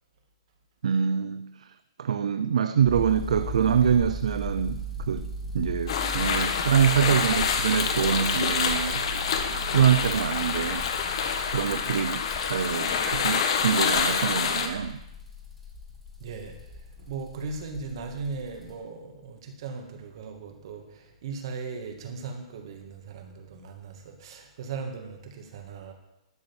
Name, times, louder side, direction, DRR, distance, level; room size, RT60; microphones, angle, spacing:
voice 1, 0.8-9.0 9.7-10.9 11.5-15.0, right 8 dB, 85° right, 0.5 m, -25 dB
sound 1, 2.9-18.7, equal, 5° left, 1.8 m, -38 dB
sound 2, 5.9-14.7, left 6 dB, 50° left, 1.4 m, -27 dB
voice 2, 16.2-25.9, right 4 dB, 45° right, 2.1 m, -38 dB
12.0 x 6.8 x 7.2 m
hypercardioid pair, 170°, 3 cm